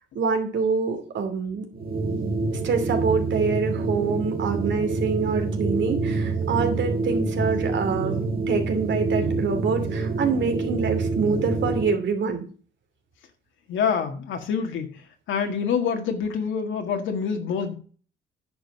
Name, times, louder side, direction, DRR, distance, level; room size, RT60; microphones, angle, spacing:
voice 1, 0.1-1.7 2.5-12.4, right 5 dB, 65° right, 6 dB, 2.7 m, -26 dB
sound 1, 1.7-12.0, right 3 dB, 50° right, 1.7 m, -27 dB
voice 2, 13.7-14.9 15.3-17.7, left 6 dB, 75° left, 4 dB, 1.9 m, -26 dB
10.0 x 5.2 x 6.6 m, 0.40 s
cardioid pair, 90°, 20 cm